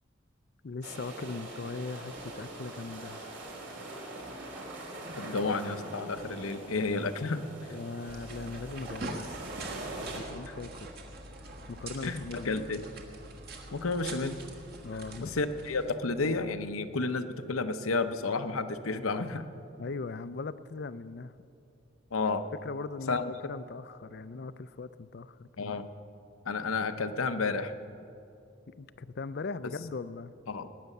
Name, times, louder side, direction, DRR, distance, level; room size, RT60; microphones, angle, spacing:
voice 1, 0.6-3.2 7.7-9.3 10.0-10.9 11.7-12.6 14.8-15.4 19.8-21.3 22.6-25.8 28.7-30.3, left 4 dB, 50° left, 15 dB, 0.4 m, -39 dB
sound 1, 0.8-10.2, right 2 dB, 65° right, 2.7 m, -43 dB
sound 2, 1.2-6.5, equal, 5° left, 0.8 m, -51 dB
voice 2, 5.2-7.4 10.5-10.6 12.0-12.8 13.7-14.4 15.2-19.4 22.1-22.4 23.1-23.3 25.6-25.8 26.4-27.7 30.5-30.7, left 3 dB, 90° left, 9 dB, 0.8 m, -31 dB
sound 3, 8.1-15.9, right 2 dB, 45° right, 1.6 m, -44 dB
19.5 x 9.5 x 6.7 m, 2.7 s
head